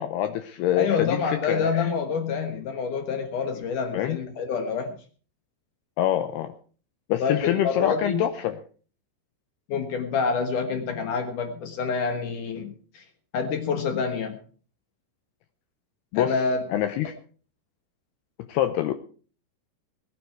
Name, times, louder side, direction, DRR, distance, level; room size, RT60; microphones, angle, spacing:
voice 1, 0.0-1.9 3.9-4.2 6.0-6.5 7.1-8.6 16.1-16.3 16.7-17.1 18.5-18.9, left 12 dB, 75° left, 9 dB, 2.5 m, -25 dB
voice 2, 0.8-5.0 7.2-8.2 9.7-13.0 13.3-14.4 16.1-16.6, left 5 dB, 60° left, 6 dB, 2.3 m, -27 dB
20.0 x 9.6 x 4.6 m, 0.41 s
omnidirectional pair, 5.2 m